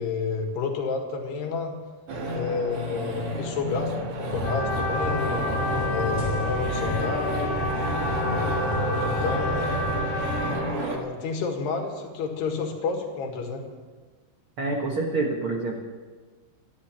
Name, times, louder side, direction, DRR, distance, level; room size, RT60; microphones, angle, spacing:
voice 1, 0.0-1.7 2.3-5.4 5.8-7.6 8.2-9.7 10.6-13.7, left 5 dB, 75° left, 1 dB, 3.9 m, -30 dB
sound 1, 2.1-11.0, right 1 dB, 50° right, 1.9 m, -31 dB
sound 2, 4.3-10.5, left 1 dB, 10° left, 2.8 m, -32 dB
Trumpet, 4.4-10.6, left 3 dB, 60° left, 1.8 m, -31 dB
voice 2, 14.6-15.8, right 3 dB, 75° right, 0 dB, 1.2 m, -27 dB
13.5 x 11.5 x 7.5 m, 1.4 s
omnidirectional pair, 4.8 m